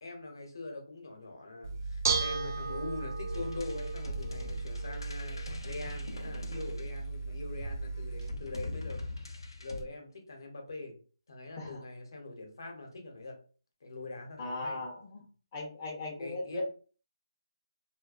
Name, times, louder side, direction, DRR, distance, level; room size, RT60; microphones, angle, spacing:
voice 1, 0.0-9.0 9.6-11.0 11.3-13.4 13.8-14.8 16.2-16.6, left 2 dB, 60° left, 3 dB, 0.8 m, -43 dB
Bell / Dishes pots and pans, 1.6-8.3, right 4 dB, 45° right, 0.4 m, -35 dB
sound 1, 3.3-7.4 8.2-9.8, left 2 dB, 90° left, 0.5 m, -43 dB
voice 2, 14.4-15.2 15.5-16.6, left 2 dB, 20° left, -3 dB, 0.5 m, -38 dB
2.4 x 2.2 x 2.3 m, 0.39 s
hypercardioid pair, 165°, 2 cm